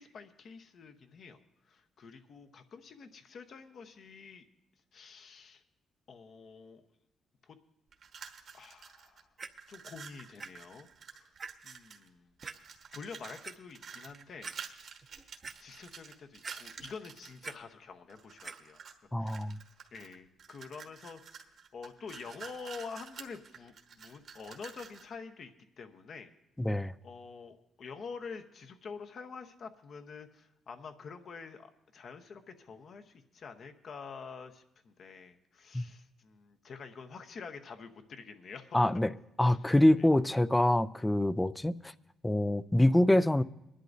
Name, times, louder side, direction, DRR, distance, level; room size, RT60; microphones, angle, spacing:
voice 1, 0.0-1.4 1.6-4.4 4.9-5.6 6.1-6.9 7.4-7.6 8.5-9.3 9.7-11.3 11.6-12.3 12.9-14.5 15.6-19.4 19.9-26.3 27.0-38.8 39.5-40.1, left 5 dB, 55° left, 0.9 m, -47 dB
sound 1, 7.9-9.2 9.5-12.1 12.4-17.5 18.1-19.0 19.3-25.1, right 6 dB, 60° right, 1.3 m, -50 dB
Clock, 9.4-9.5 10.4-10.5 10.9-11.0 11.4-11.5 12.4-12.6 13.2-13.5 14.1-14.2 14.4-14.6 15.0-15.6 16.4-16.9 17.2-17.5 18.4-18.5 19.3-19.4, right 4 dB, 35° right, 0.7 m, -43 dB
voice 2, 19.1-19.6 26.6-26.9 35.7-35.9 38.7-39.1 39.4-41.9 42.2-43.4, left 1 dB, 10° left, 0.4 m, -25 dB
22.5 x 11.0 x 2.6 m
cardioid pair, 90°, 0 cm